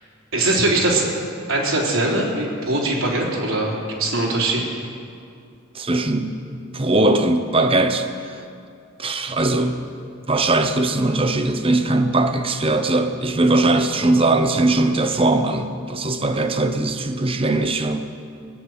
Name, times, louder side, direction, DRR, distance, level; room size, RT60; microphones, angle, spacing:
voice 1, 0.3-1.1 1.5-4.6, right 2 dB, 85° right, -3 dB, 3.7 m, -21 dB
voice 2, 5.7-8.4 9.0-9.9 10.3-18.1, right 2 dB, 25° right, 8 dB, 0.8 m, -20 dB
19.0 x 8.2 x 9.4 m, 2.4 s
head